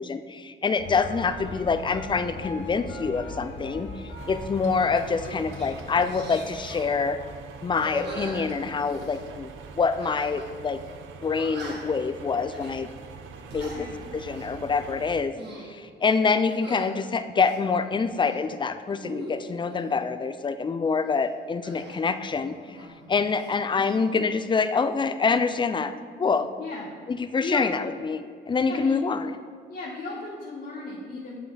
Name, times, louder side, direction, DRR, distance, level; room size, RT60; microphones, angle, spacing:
voice 1, 0.0-3.9 4.3-7.2 7.6-9.5 9.8-10.8 11.2-12.9 13.5-13.9 14.1-15.3 15.6-22.8 23.1-25.9 26.2-26.5 27.1-29.3, left 5 dB, 25° left, 11 dB, 0.4 m, -26 dB
sound 1, 0.8-7.5, left 2 dB, 65° left, 1.2 m, -40 dB
sound 2, 4.2-15.2, right 5 dB, 85° right, 0.6 m, -44 dB
sound 3, 4.8-4.9 5.3-5.7 6.0-6.9 7.7-9.2 10.0-10.5 10.8-10.9 11.3-12.0 12.5-12.8 13.3-13.8 14.2-14.5 15.1-15.7 16.5-16.9 17.4-18.4 18.9-19.8 21.6-23.0 23.3-24.0, right 1 dB, 60° right, 1.9 m, -41 dB
voice 2, 26.6-26.9 27.4-27.6 28.6-29.0 29.7-31.4, left 3 dB, 45° left, -4 dB, 1.2 m, -35 dB
7.6 x 5.7 x 3.9 m, 2.2 s
cardioid pair, 90°, 20 cm